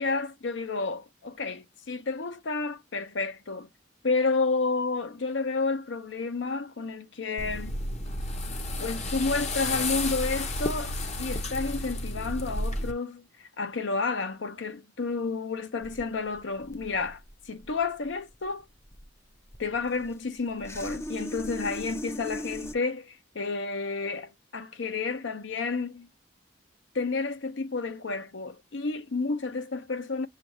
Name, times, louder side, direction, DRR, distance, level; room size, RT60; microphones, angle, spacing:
voice 1, 0.0-3.7 4.0-7.8 8.8-13.2 13.6-17.2 17.5-18.6 19.6-26.1 26.9-30.3, left 4 dB, 65° left, 0.7 m, -31 dB
sound 1, 7.4-12.9, left 2 dB, 35° left, 0.8 m, -32 dB
sound 2, 15.8-22.7, equal, 15° left, 0.5 m, -40 dB
7.1 x 2.5 x 3.0 m
head